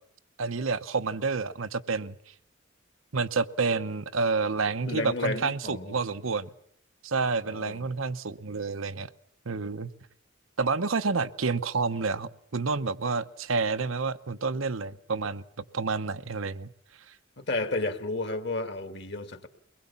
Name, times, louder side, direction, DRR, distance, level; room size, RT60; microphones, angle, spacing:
voice 1, 0.4-2.1 3.1-6.5 7.0-9.1 9.5-9.9 10.6-15.4 15.7-16.7, right 4 dB, 85° right, 0.9 m, -29 dB
voice 2, 4.9-6.0 7.5-7.9 17.4-19.5, left 2 dB, 55° left, 2.2 m, -32 dB
23.0 x 20.5 x 7.1 m
head